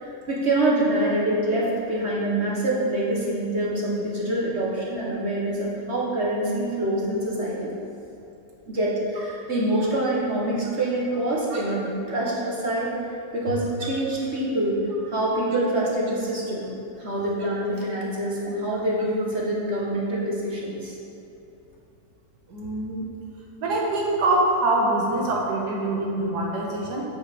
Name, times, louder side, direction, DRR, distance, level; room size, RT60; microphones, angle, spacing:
voice 1, 0.0-7.7 8.7-12.9 13.3-14.8 15.1-16.7 17.0-20.9, right 1 dB, 45° right, -5 dB, 1.5 m, -25 dB
voice 2, 22.5-23.0 23.6-27.1, right 2 dB, 85° right, -3 dB, 2.0 m, -24 dB
8.2 x 5.8 x 5.1 m, 3.0 s
omnidirectional pair, 1.7 m